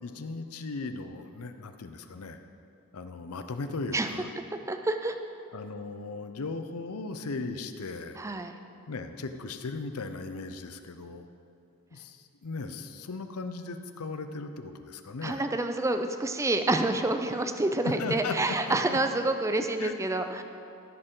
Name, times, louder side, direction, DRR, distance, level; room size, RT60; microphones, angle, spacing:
voice 1, 0.0-2.4 2.9-4.3 5.5-8.2 8.9-11.3 11.9-15.4 17.8-19.0 19.8-19.9, left 3 dB, 75° left, 8 dB, 0.6 m, -37 dB
voice 2, 4.7-5.2 8.2-8.5 15.2-20.4, right 2 dB, 15° right, 7 dB, 0.4 m, -28 dB
15.0 x 6.6 x 3.8 m, 2.6 s
head